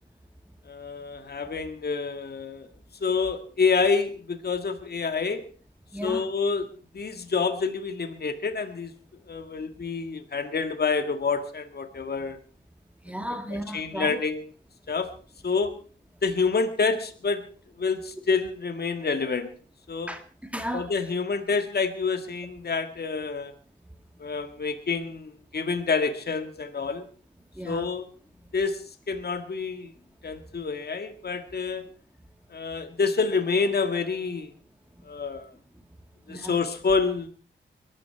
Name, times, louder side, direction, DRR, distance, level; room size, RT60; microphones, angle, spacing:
voice 1, 0.7-2.7 3.0-5.4 6.0-6.7 6.9-8.9 9.3-12.4 13.5-14.5 14.9-15.1 15.4-15.7 16.2-17.4 17.8-19.5 19.9-20.1 20.7-23.5 24.2-27.0 27.6-28.1 28.5-29.9 30.2-31.8 32.5-34.5 35.1-35.5 36.3-37.3, left 4 dB, 55° left, 1.9 m, -27 dB
voice 2, 5.9-6.2 13.1-14.2 20.1-20.9 27.6-27.9 36.3-36.5, equal, 5° right, 2.2 m, -34 dB
22.0 x 13.0 x 4.7 m
cardioid pair, 75°, 20 cm